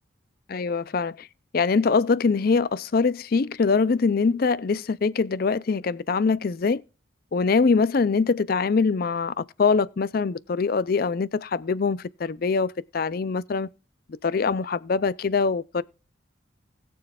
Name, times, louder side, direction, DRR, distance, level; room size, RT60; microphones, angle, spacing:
voice 1, 0.5-1.3 1.5-6.8 7.3-13.7 14.2-15.8, left 4 dB, 45° left, 0.4 m, -23 dB
20.0 x 6.9 x 2.4 m
head